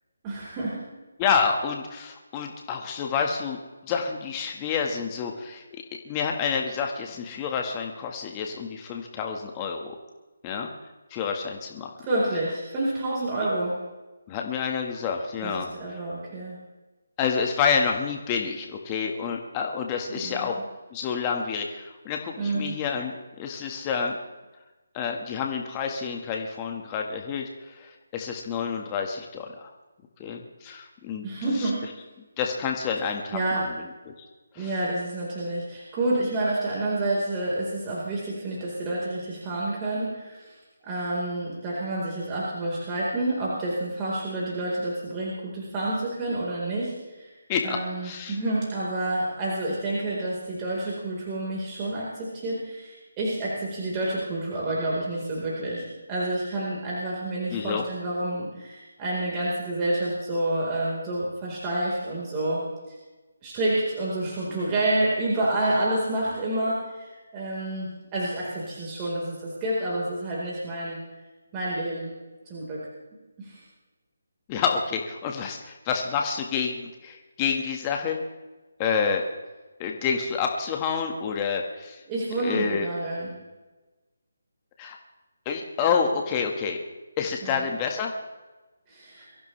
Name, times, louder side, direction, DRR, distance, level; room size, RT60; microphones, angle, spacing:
voice 1, 0.2-0.8 12.0-13.7 15.4-16.6 20.1-20.5 22.4-22.8 31.2-31.8 33.3-33.7 34.5-40.5 40.8-47.3 47.6-62.6 62.9-63.0 63.4-71.0 71.5-72.1 72.5-72.8 73.4-73.6 82.1-83.3 87.4-87.7 88.9-89.3, right 1 dB, 20° right, -6 dB, 4.5 m, -29 dB
voice 2, 1.2-3.6 3.8-5.6 6.0-9.9 10.4-10.7 11.1-11.9 14.3-15.7 17.2-20.5 20.9-24.2 24.9-29.7 30.2-31.3 31.6-31.7 32.4-33.4 34.1-34.2 34.5-34.7 47.5-47.8 48.0-48.4 57.5-57.8 74.5-78.2 78.8-79.2 79.8-82.0 82.4-82.9 84.8-85.0 85.4-86.8 87.2-88.2, left 6 dB, 20° left, 2 dB, 1.7 m, -28 dB
23.5 x 15.0 x 3.4 m, 1.2 s
figure-of-eight pair, 155°, 0 cm